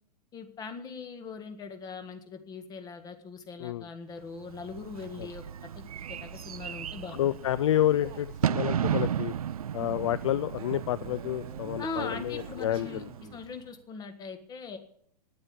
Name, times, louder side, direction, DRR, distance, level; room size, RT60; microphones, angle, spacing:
voice 1, 0.3-5.4 5.8-7.2 11.8-13.0 13.3-14.8, left 4 dB, 20° left, 8 dB, 1.6 m, -40 dB
Bird / Fireworks, 4.4-13.6, right 9 dB, 65° right, 0.4 m, -35 dB
Male speech man speaking, 6.0-9.0 10.6-13.5, right 8 dB, 25° right, 1.3 m, -49 dB
voice 2, 7.1-9.3 9.7-13.4, left 12 dB, 50° left, 17 dB, 0.4 m, -29 dB
9.9 x 8.7 x 8.7 m, 0.66 s
figure-of-eight pair, 110°, 20 cm